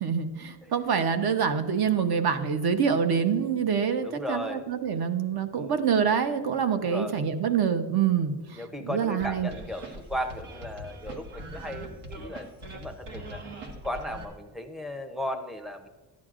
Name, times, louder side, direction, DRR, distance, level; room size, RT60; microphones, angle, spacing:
voice 1, 0.0-9.5, right 7 dB, 50° right, 8 dB, 0.9 m, -26 dB
voice 2, 4.0-4.7 5.6-5.8 6.8-7.1 8.5-13.4 13.8-15.9, left 1 dB, ahead, 6 dB, 0.6 m, -36 dB
sound 1, 9.2-14.2, right 1 dB, 85° right, 1.7 m, -41 dB
13.5 x 10.5 x 2.5 m, 1.3 s
cardioid pair, 135°, 47 cm